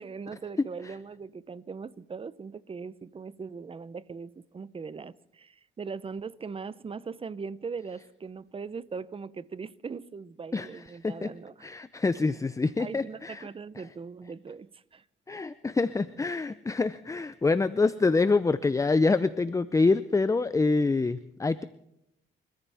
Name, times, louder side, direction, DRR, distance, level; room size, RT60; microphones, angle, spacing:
voice 1, 0.0-11.5 12.8-15.0, right 5 dB, 30° right, 0.7 m, -40 dB
voice 2, 10.5-11.3 11.6-13.5 15.3-21.6, left 3 dB, 15° left, 0.6 m, -26 dB
28.5 x 14.0 x 3.5 m
cardioid pair, 90°, 20 cm